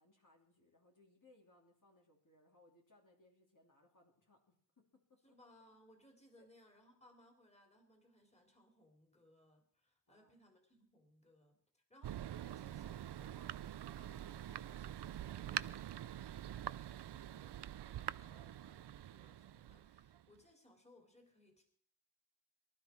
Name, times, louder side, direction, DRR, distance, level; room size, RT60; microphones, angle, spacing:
voice 1, 0.0-5.4 6.4-6.5 10.1-10.3 14.1-14.2, left 2 dB, 50° left, 0 dB, 3.4 m, -69 dB
voice 2, 5.2-21.6, left 1 dB, 15° left, 2 dB, 3.5 m, -67 dB
Thunder, 12.0-20.4, right 11 dB, 85° right, 0.5 m, -45 dB
23.5 x 12.0 x 4.5 m, 0.63 s
wide cardioid pair, 95°, 40 cm